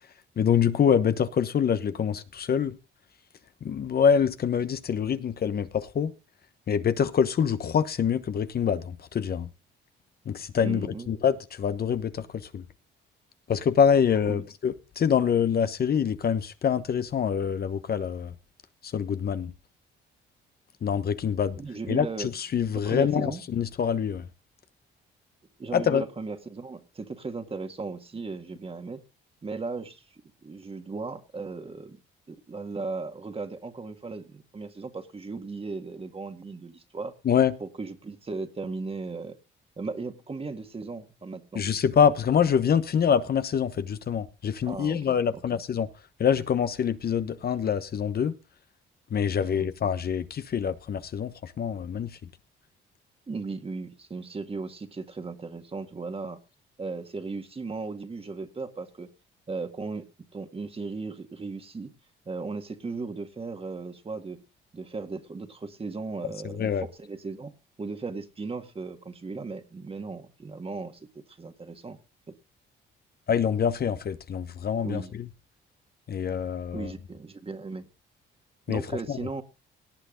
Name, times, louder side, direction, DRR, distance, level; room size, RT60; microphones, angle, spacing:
voice 1, 0.4-2.7 3.6-6.1 6.7-9.5 10.3-12.3 12.5-12.6 13.5-18.3 18.9-19.5 20.8-21.6 21.9-24.2 25.7-26.0 37.2-37.5 41.5-45.9 46.2-48.3 49.1-52.1 66.6-66.8 73.3-75.0 76.1-76.9 78.7-78.8 79.1-79.2, left 7 dB, 50° left, 1.1 m, -25 dB
voice 2, 10.6-11.1 14.3-14.5 21.6-22.3 22.7-23.4 25.6-29.0 29.4-32.0 32.3-37.1 37.6-39.4 39.8-41.7 44.6-45.4 49.4-49.7 53.3-56.4 56.8-59.1 59.5-61.9 62.3-64.4 64.7-67.5 67.8-72.0 74.8-75.1 76.7-77.9 78.7-79.4, right 4 dB, 30° right, 1.9 m, -37 dB
18.0 x 8.2 x 3.8 m
cardioid pair, 90°, 20 cm